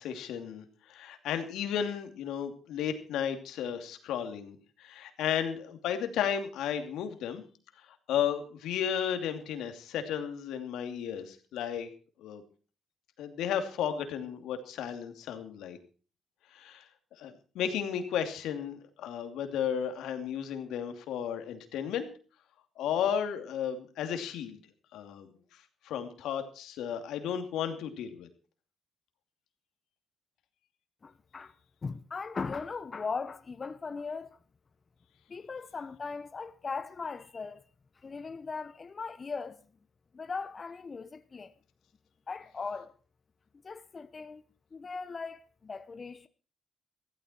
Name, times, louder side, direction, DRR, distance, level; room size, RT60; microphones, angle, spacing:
voice 1, 0.0-7.4 7.8-11.9 12.2-12.4 13.2-15.8 16.5-16.9 17.2-22.1 22.8-24.6 24.9-25.3 25.8-28.3, left 8 dB, 85° left, 2.7 m, -34 dB
voice 2, 31.0-31.5 31.8-34.4 35.3-37.6 38.0-39.6 40.1-41.5 42.3-42.9 43.6-44.4 44.7-46.3, left 4 dB, 35° left, 1.0 m, -38 dB
15.5 x 14.0 x 4.5 m
cardioid pair, 90°, 0 cm